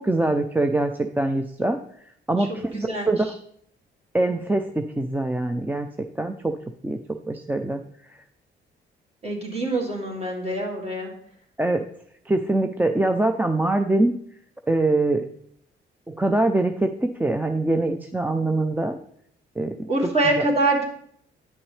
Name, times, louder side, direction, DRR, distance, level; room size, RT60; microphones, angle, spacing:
voice 1, 0.0-1.8 2.3-3.3 4.1-5.9 6.2-6.6 6.8-7.0 7.3-7.8 11.6-11.8 12.3-14.1 14.7-15.3 16.1-19.0 19.6-19.7, right 2 dB, 10° right, 7 dB, 0.4 m, -23 dB
voice 2, 2.7-3.1 9.2-11.1 19.9-20.8, right 2 dB, 30° right, -1 dB, 2.4 m, -24 dB
9.2 x 5.9 x 3.2 m, 0.67 s
cardioid pair, 90°, 20 cm